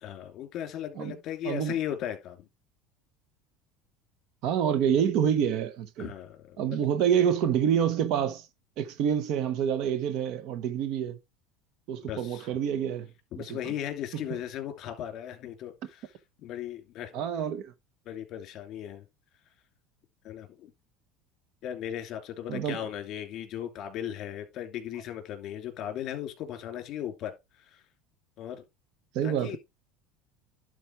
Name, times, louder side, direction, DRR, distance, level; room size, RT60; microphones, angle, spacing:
voice 1, 0.0-2.5 6.0-6.8 12.1-12.5 13.3-16.1 16.4-17.3 18.0-19.0 20.2-20.7 21.6-27.3 27.6-27.8 28.4-28.6 29.2-29.6, left 10 dB, 45° left, 2.8 m, -37 dB
voice 2, 1.4-1.7 4.4-6.1 6.6-8.5 8.8-11.2 11.9-13.1 13.4-13.7 14.1-14.4 17.1-17.7 22.5-22.8 29.1-29.6, right 8 dB, 55° right, 1.1 m, -27 dB
11.5 x 4.4 x 4.6 m
cardioid pair, 145°, 0 cm